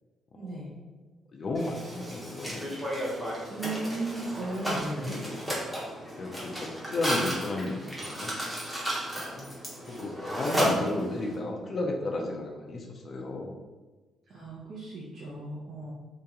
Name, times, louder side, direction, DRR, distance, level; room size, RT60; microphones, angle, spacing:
voice 1, 0.3-0.7 3.5-5.2 14.3-15.9, right 2 dB, 45° right, -7 dB, 0.7 m, -35 dB
voice 2, 1.3-2.6 5.0-5.4 6.2-8.6 9.1-9.4 9.9-13.6, left 2 dB, 35° left, 1 dB, 0.5 m, -34 dB
Mechanisms, 1.5-11.3, equal, 10° right, 0.8 m, -33 dB
2.9 x 2.9 x 3.5 m, 1.2 s
cardioid pair, 165°, 0 cm